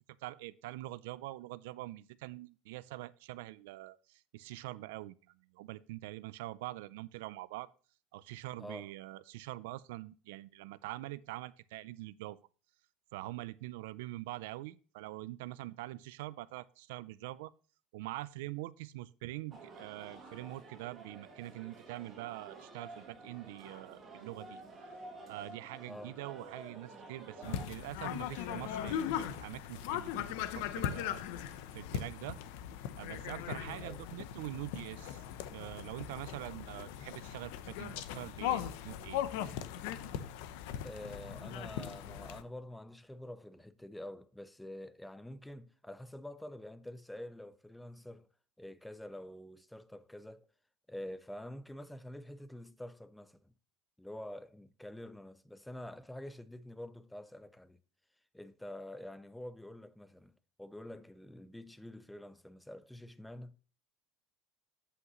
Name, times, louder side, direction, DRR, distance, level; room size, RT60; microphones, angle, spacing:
voice 1, 0.2-7.7 8.1-12.4 13.1-17.5 17.9-24.6 25.3-32.4 33.0-35.2 35.5-39.2, right 17 dB, 85° right, 0.3 m, -44 dB
voice 2, 8.6-8.9 25.9-26.2 33.8-34.0 40.8-48.3 48.6-50.5 50.9-53.5 54.0-57.8 58.3-60.3 60.6-63.5, left 1 dB, 5° left, 0.4 m, -47 dB
sound 1, 19.5-27.7, right 3 dB, 20° right, 2.1 m, -51 dB
sound 2, 27.4-42.4, left 10 dB, 70° left, 0.6 m, -39 dB
8.2 x 7.9 x 3.0 m
cardioid pair, 170°, 0 cm